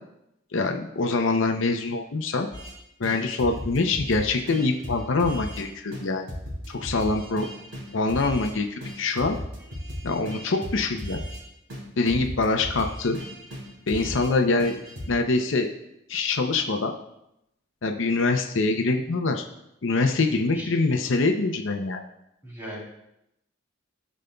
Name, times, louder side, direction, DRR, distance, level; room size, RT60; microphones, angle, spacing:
voice 1, 0.5-2.5 3.0-6.2 6.7-7.5 7.9-9.4 10.0-11.2 12.0-13.2 13.9-14.7 15.1-15.7 16.1-16.9 17.8-19.4 19.8-22.0, left 3 dB, 65° left, 4 dB, 0.6 m, -24 dB
sound 1, 2.5-2.7 3.0-5.6 5.9-6.0 6.3-8.5 8.8-11.4 11.7-14.3 14.6-15.1, equal, 75° right, 2.7 m, -36 dB
voice 2, 22.4-22.8, equal, 10° right, -5 dB, 2.9 m, -37 dB
15.5 x 5.2 x 2.3 m, 0.83 s
head